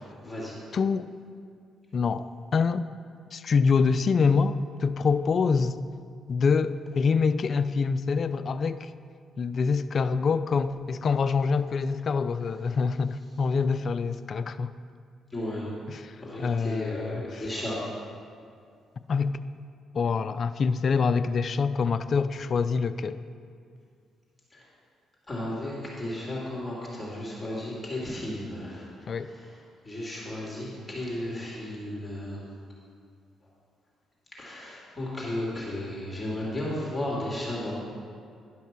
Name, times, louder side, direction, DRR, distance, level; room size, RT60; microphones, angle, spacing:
voice 1, 0.2-0.6 15.3-15.7 16.2-17.8 24.5-24.6 25.3-29.6 29.8-32.5 34.3-37.7, left 1 dB, 15° left, -6 dB, 2.8 m, -34 dB
voice 2, 0.7-1.1 1.9-2.3 2.5-2.9 3.3-5.8 6.3-8.9 9.4-14.7 15.9-17.4 19.1-19.4 19.9-23.2 29.1-29.3, left 5 dB, 50° left, 12 dB, 0.4 m, -25 dB
11.0 x 5.7 x 6.0 m, 2.3 s
cardioid pair, 90°, 0 cm